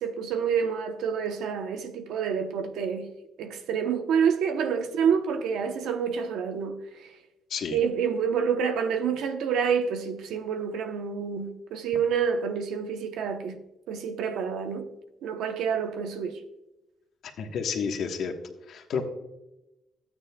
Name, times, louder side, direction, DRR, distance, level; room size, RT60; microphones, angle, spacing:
voice 1, 0.0-3.1 3.4-6.8 7.7-13.6 13.9-14.9 15.2-16.4, right 7 dB, 85° right, 0.9 m, -28 dB
voice 2, 17.4-18.3 18.7-19.0, left 6 dB, 70° left, 1.3 m, -30 dB
13.0 x 8.9 x 2.3 m
cardioid pair, 90°, 0 cm